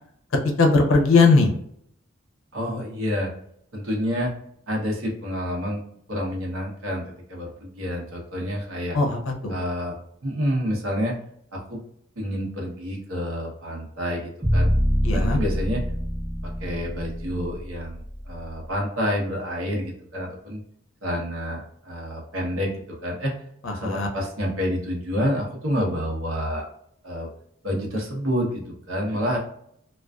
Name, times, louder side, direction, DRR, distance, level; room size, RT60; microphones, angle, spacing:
voice 1, 0.6-1.5 8.9-9.5 15.0-15.4 23.6-24.1, left 3 dB, 80° left, 3 dB, 0.6 m, -19 dB
voice 2, 2.5-3.3 3.7-4.3 4.7-5.8 6.1-9.0 9.5-10.0 10.2-11.2 11.5-11.8 12.2-14.7 15.1-15.8 16.6-20.6 21.0-22.7 23.0-23.3 23.7-26.6 27.0-27.3 27.6-29.4, equal, 90° right, -1 dB, 0.8 m, -28 dB
sound 1, 14.4-18.5, equal, 20° right, 1.0 m, -25 dB
2.4 x 2.3 x 2.2 m, 0.70 s
head